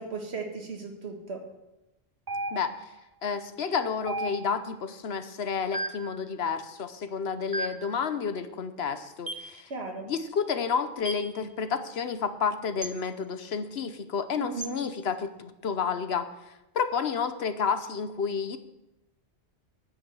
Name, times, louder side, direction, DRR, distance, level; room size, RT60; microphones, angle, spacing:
voice 1, 0.0-1.4 9.7-10.1 14.4-14.8, right 3 dB, 80° right, 3 dB, 2.0 m, -36 dB
sound 1, 2.3-3.0 4.1-4.7 5.7-6.2 7.5-8.0 9.3-9.5 11.1-11.3 12.8-13.0 14.6-14.8, right 2 dB, 30° right, 0.4 m, -35 dB
voice 2, 3.2-9.7 10.0-16.3 16.7-18.6, left 6 dB, 75° left, 10 dB, 1.1 m, -30 dB
9.6 x 9.4 x 6.2 m, 0.94 s
omnidirectional pair, 1.1 m